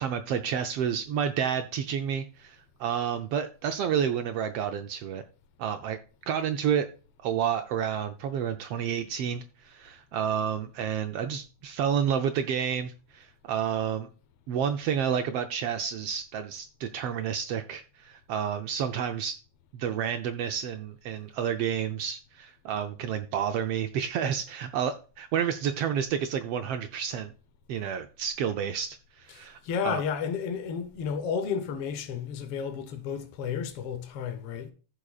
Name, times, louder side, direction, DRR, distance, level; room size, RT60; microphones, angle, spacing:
voice 1, 0.0-5.2 5.6-6.0 6.3-6.9 7.2-14.1 14.5-19.4 19.7-27.3 27.7-30.0, right 8 dB, 80° right, 1.3 m, -30 dB
voice 2, 29.3-34.7, left 7 dB, 65° left, 1.5 m, -32 dB
14.5 x 6.2 x 2.4 m
omnidirectional pair, 3.4 m